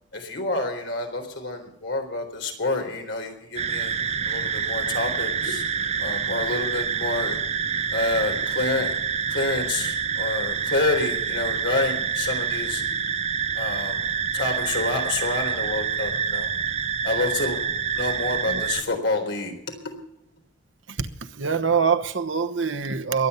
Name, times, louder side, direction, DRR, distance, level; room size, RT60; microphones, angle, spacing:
voice 1, 0.1-3.9 4.2-5.6 6.0-7.4 7.9-8.9 9.3-12.8 13.5-16.5 17.0-19.9, left 2 dB, 70° left, 3.9 m, -28 dB
sound 1, 3.6-18.8, right 7 dB, 35° right, 0.7 m, -27 dB
voice 2, 21.4-23.3, right 6 dB, 85° right, 1.1 m, -24 dB
22.5 x 9.4 x 5.6 m
head